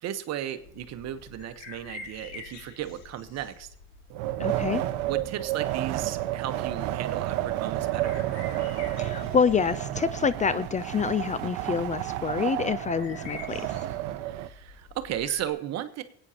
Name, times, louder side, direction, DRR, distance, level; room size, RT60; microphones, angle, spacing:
voice 1, 0.0-3.7 5.1-8.2 14.2-16.0, right 11 dB, 55° right, 10 dB, 1.1 m, -35 dB
sound 1, 0.6-15.5, left 4 dB, 60° left, 2.1 m, -48 dB
Wind, 4.1-14.5, right 14 dB, 75° right, 0.7 m, -31 dB
voice 2, 4.4-4.8 9.0-13.7, left 6 dB, 25° left, 16 dB, 0.4 m, -27 dB
24.0 x 8.9 x 2.9 m, 0.76 s
supercardioid pair, 80°, 31 cm